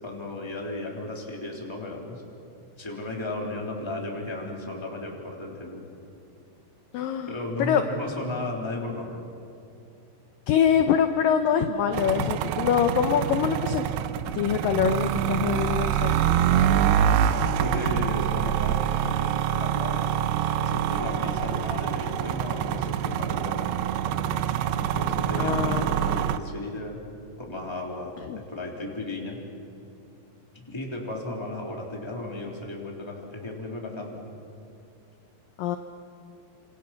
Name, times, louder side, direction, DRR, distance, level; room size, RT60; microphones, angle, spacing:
voice 1, 0.0-2.2 2.8-5.8 7.2-9.2 17.5-20.1 20.6-23.7 24.7-27.0 27.4-29.4 30.5-34.2, left 2 dB, 5° left, -1 dB, 2.8 m, -35 dB
voice 2, 6.9-7.8 10.5-13.9 14.3-16.2 25.4-25.9 28.3-28.4 35.6-35.8, left 8 dB, 75° left, 7 dB, 2.1 m, -24 dB
sound 1, 11.9-26.4, right 9 dB, 80° right, 2.8 m, -25 dB
29.5 x 26.5 x 5.9 m, 2.7 s
omnidirectional pair, 4.8 m